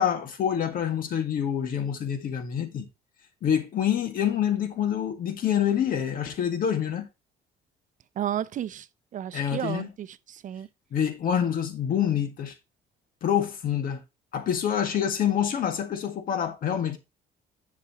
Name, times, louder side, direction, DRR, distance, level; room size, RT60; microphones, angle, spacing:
voice 1, 0.0-2.9 3.4-7.1 9.3-9.9 10.9-12.5 13.2-14.0 14.3-17.0, left 9 dB, 55° left, 1.9 m, -26 dB
voice 2, 8.2-8.9 9.1-10.7, right 10 dB, 50° right, 0.6 m, -32 dB
10.5 x 5.9 x 3.0 m
cardioid pair, 110°, 17 cm